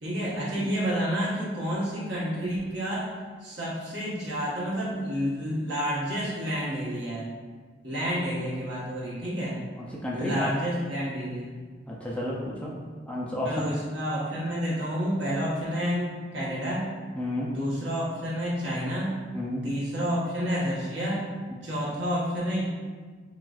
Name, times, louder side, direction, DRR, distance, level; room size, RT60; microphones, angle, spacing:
voice 1, 0.0-3.1 3.4-7.3 7.8-9.6 10.1-11.6 13.4-16.9 17.5-19.2 19.6-21.3 21.6-22.7, equal, 70° right, -7 dB, 1.2 m, -29 dB
voice 2, 9.8-10.5 11.9-12.7 13.0-13.6 17.2-17.5 19.3-19.6, left 1 dB, 5° left, -5 dB, 0.4 m, -31 dB
5.9 x 2.4 x 2.4 m, 1.5 s
head